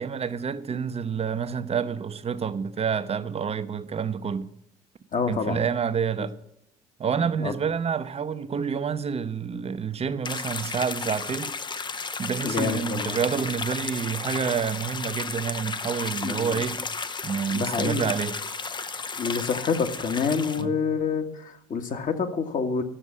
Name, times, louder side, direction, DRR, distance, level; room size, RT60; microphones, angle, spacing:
voice 1, 0.0-4.5 5.3-6.3 7.0-11.5 12.2-16.8 17.2-18.4 20.6-20.8, right 7 dB, 30° right, 0.8 m, -28 dB
voice 2, 5.1-5.6 6.2-6.3 7.4-7.5 12.4-13.2 16.2-16.6 17.5-18.1 19.2-22.8, left 5 dB, 45° left, 1.5 m, -27 dB
sound 1, 10.2-20.6, left 4 dB, 25° left, 0.6 m, -33 dB
11.5 x 7.1 x 8.3 m
figure-of-eight pair, 55°, 20 cm